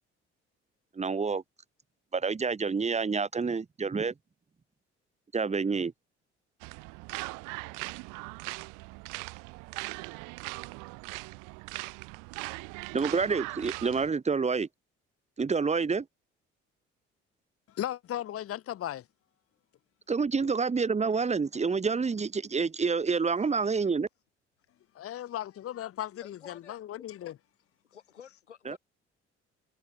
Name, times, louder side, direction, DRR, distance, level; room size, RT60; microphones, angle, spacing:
voice 1, 1.0-1.4 2.1-4.1 5.3-5.9 12.9-14.7 15.4-16.0 20.1-24.1 28.7-28.8, right 5 dB, 20° right, 1.1 m, -28 dB
sound 1, 6.6-14.1, right 29 dB, 65° right, 1.6 m, -40 dB
voice 2, 17.7-19.0 24.9-27.3, left 12 dB, 40° left, 1.1 m, -36 dB
voice 3, 26.2-26.8 27.2-27.3 27.9-28.8, left 8 dB, 85° left, 3.5 m, -50 dB
figure-of-eight pair, 50°, 34 cm